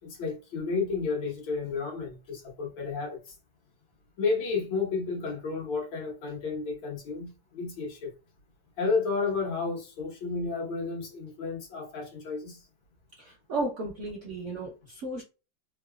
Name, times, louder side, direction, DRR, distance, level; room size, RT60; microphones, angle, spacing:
voice 1, 0.0-3.4 4.2-8.1 8.8-12.7, left 4 dB, 90° left, 1.9 m, -32 dB
voice 2, 13.2-15.2, right 2 dB, 70° right, 0.7 m, -34 dB
3.9 x 2.2 x 2.2 m
omnidirectional pair, 2.0 m